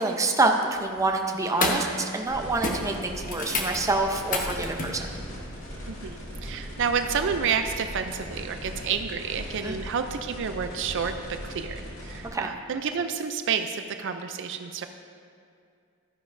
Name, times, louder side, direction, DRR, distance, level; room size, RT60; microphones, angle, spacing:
voice 1, 0.0-5.0 9.6-9.8 12.3-12.5, right 2 dB, 15° right, 3 dB, 0.6 m, -26 dB
sound 1, 0.8-1.1 1.5-2.3 2.6-5.0 7.0-7.1, left 2 dB, 40° left, 1.0 m, -30 dB
sound 2, 2.3-12.3, equal, 65° left, 2.1 m, -39 dB
voice 2, 5.9-14.9, right 6 dB, 60° right, 8 dB, 0.5 m, -30 dB
12.5 x 9.9 x 2.6 m, 2.3 s
head